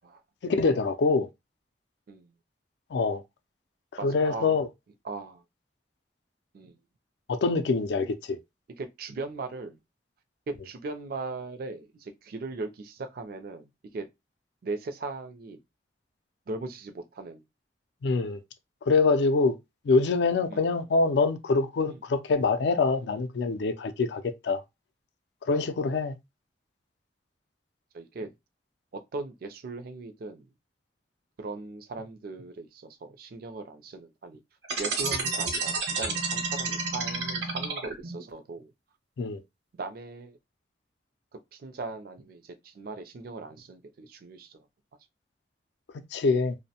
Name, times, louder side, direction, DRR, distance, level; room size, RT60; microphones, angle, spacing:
voice 1, 0.4-1.3 2.9-3.2 4.0-4.7 7.3-8.4 18.0-18.4 18.9-19.6 19.9-24.6 25.5-26.2 39.2-39.4 45.9-46.5, left 4 dB, 70° left, 0.4 m, -25 dB
voice 2, 4.0-4.6 5.0-5.4 6.5-6.8 8.8-9.8 10.5-14.1 14.6-15.6 16.5-17.4 20.5-20.7 21.9-22.0 27.9-28.3 28.9-30.5 31.4-34.4 34.8-38.7 39.8-40.4 41.3-44.6, right 3 dB, 55° right, 0.4 m, -39 dB
sound 1, 34.6-38.2, right 4 dB, 70° right, 0.8 m, -30 dB
2.5 x 2.1 x 2.7 m
head